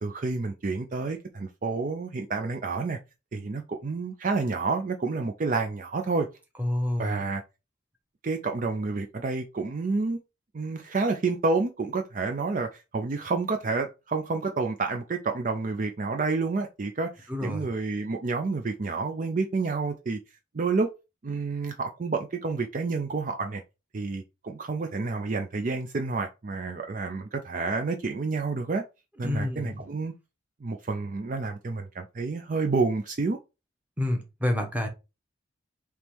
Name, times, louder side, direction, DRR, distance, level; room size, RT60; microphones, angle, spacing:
voice 1, 0.0-3.0 3.3-6.3 7.0-7.4 8.2-10.2 10.5-20.2 20.5-20.9 21.2-23.6 23.9-28.8 29.2-30.1 30.6-33.4, right 3 dB, 40° right, 0.4 m, -29 dB
voice 2, 6.6-7.3 17.3-17.7 29.2-29.9 34.0-34.9, left 1 dB, 10° right, 0.9 m, -29 dB
3.5 x 3.0 x 4.5 m
head